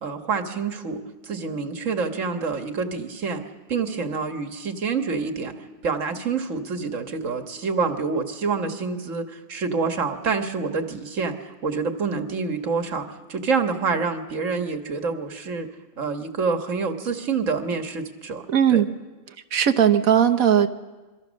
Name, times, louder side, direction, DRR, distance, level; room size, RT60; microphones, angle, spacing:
voice 1, 0.0-3.4 3.7-5.5 5.8-15.7 16.0-18.8, right 4 dB, 65° right, 6 dB, 1.9 m, -27 dB
voice 2, 18.5-18.9 19.5-20.7, right 9 dB, 85° right, 10 dB, 1.5 m, -18 dB
26.5 x 23.5 x 6.4 m, 1.2 s
omnidirectional pair, 1.4 m